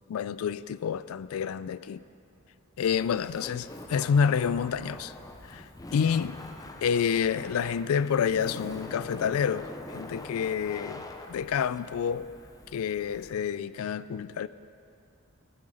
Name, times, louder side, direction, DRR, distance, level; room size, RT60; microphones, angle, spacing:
voice 1, 0.1-2.0 2.8-5.1 5.5-6.4 6.8-9.7 9.9-12.3 12.7-14.5, left 7 dB, 85° left, 17 dB, 0.3 m, -28 dB
Laughter, 2.8-13.3, left 1 dB, 15° left, 0.6 m, -44 dB
12.5 x 8.6 x 5.0 m, 2.6 s
head